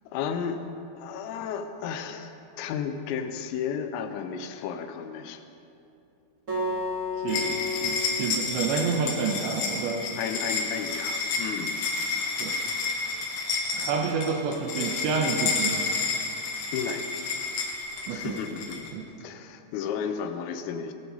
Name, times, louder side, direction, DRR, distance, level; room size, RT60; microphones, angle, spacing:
voice 1, 0.1-0.6 1.0-2.3 2.6-5.4 10.2-11.8 16.7-17.1 18.1-18.9 19.2-20.9, left 7 dB, 85° left, 8 dB, 3.4 m, -33 dB
Acoustic guitar, 6.5-9.7, left 2 dB, 25° right, 1.9 m, -33 dB
voice 2, 7.2-10.1 12.4-12.6 13.7-15.8 18.1-18.4 18.9-19.1, right 5 dB, 80° right, 2 dB, 2.7 m, -29 dB
sound 1, 7.3-18.9, left 4 dB, 65° left, 3.3 m, -30 dB
19.5 x 15.5 x 4.0 m, 2.7 s
omnidirectional pair, 6.0 m